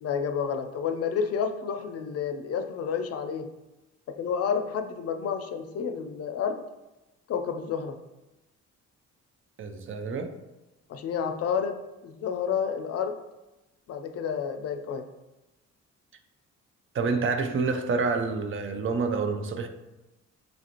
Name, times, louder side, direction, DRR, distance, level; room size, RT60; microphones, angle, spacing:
voice 1, 0.0-3.5 4.2-6.6 7.3-8.0 10.9-11.7 12.0-13.2 13.9-15.0, left 7 dB, 55° left, 0.5 m, -30 dB
voice 2, 9.6-10.4 16.9-19.7, right 4 dB, 45° right, 0.5 m, -28 dB
5.2 x 2.4 x 2.9 m
cardioid pair, 90°, 30 cm